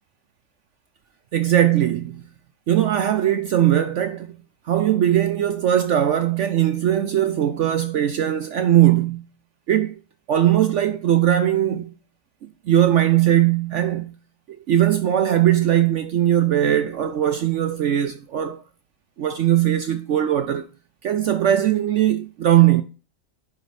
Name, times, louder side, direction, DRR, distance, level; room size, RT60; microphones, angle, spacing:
voice 1, 1.3-2.2 2.7-4.3 4.7-9.2 9.7-10.0 10.3-11.9 12.4-14.1 14.7-18.6 19.2-20.7 21.0-22.8, right 11 dB, 65° right, 0.7 m, -19 dB
10.0 x 5.0 x 2.5 m
omnidirectional pair, 1.7 m